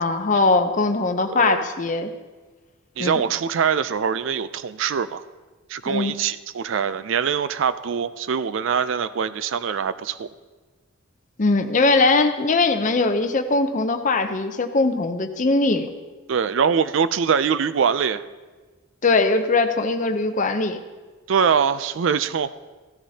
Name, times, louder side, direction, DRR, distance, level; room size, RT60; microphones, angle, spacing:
voice 1, 0.0-2.1 3.0-3.2 5.9-6.1 11.4-15.9 19.0-20.8, left 3 dB, 40° left, 8 dB, 0.7 m, -20 dB
voice 2, 3.0-5.2 5.7-10.3 16.3-18.2 21.3-22.5, right 7 dB, 65° right, 14 dB, 0.4 m, -23 dB
15.5 x 13.0 x 2.8 m, 1.3 s
head